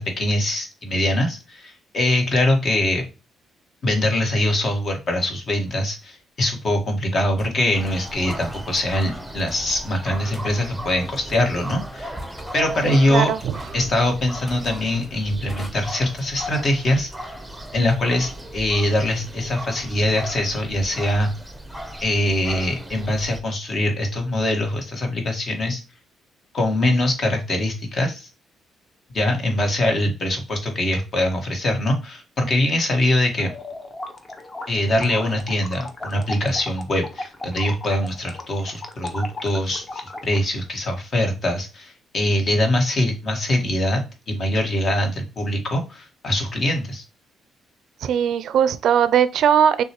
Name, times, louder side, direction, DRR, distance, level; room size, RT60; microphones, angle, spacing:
voice 1, 0.0-3.0 3.8-12.1 12.5-13.3 13.7-17.3 17.7-21.3 22.0-25.8 26.5-28.3 29.1-33.5 34.7-47.0, left 1 dB, 50° left, 1.4 m, -23 dB
sound 1, 5.7-5.8 7.4-7.6 8.4-8.6 9.5-9.8 10.3-10.5 11.3-11.7 12.2-12.6 13.4-13.8 14.5-14.9 15.5-15.7, equal, 15° left, 1.5 m, -40 dB
sound 2, 7.7-23.4, right 1 dB, 5° right, 0.7 m, -36 dB
voice 2, 12.8-13.5 48.0-49.8, right 8 dB, 70° right, 0.4 m, -19 dB
sound 3, 33.4-40.4, left 2 dB, 30° left, 0.9 m, -36 dB
6.3 x 2.4 x 2.9 m
cardioid pair, 90°, 0 cm